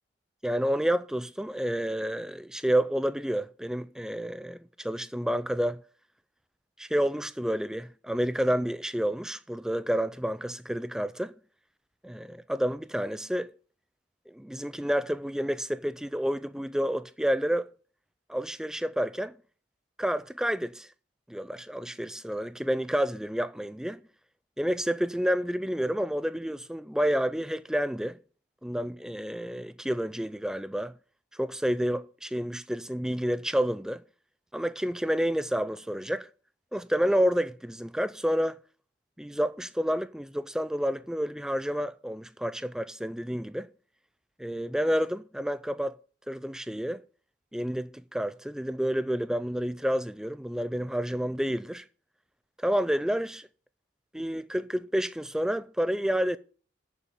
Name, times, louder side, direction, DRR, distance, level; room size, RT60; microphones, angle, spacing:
voice 1, 0.4-5.8 6.8-11.3 12.0-13.5 14.3-17.7 18.3-19.3 20.0-20.9 21.3-24.0 24.6-28.2 28.6-30.9 31.3-34.0 34.5-36.3 36.7-38.6 39.2-43.7 44.4-46.0 46.3-47.0 47.5-51.9 52.6-53.5 54.1-56.4, equal, 5° right, 0.3 m, -29 dB
7.1 x 6.4 x 6.7 m
head